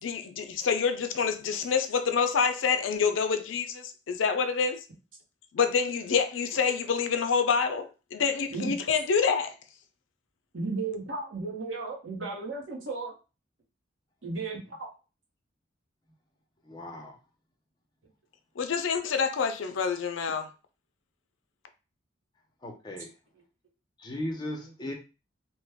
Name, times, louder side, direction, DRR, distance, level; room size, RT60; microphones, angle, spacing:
voice 1, 0.0-4.8 5.5-9.5 18.6-20.5, left 6 dB, 85° left, 0.5 m, -27 dB
voice 2, 10.5-13.1 14.2-14.9 24.6-24.9, right 3 dB, 85° right, 1.0 m, -35 dB
voice 3, 16.6-17.1 22.6-23.1 24.0-24.9, left 1 dB, 20° left, 0.6 m, -36 dB
3.0 x 2.2 x 3.4 m
head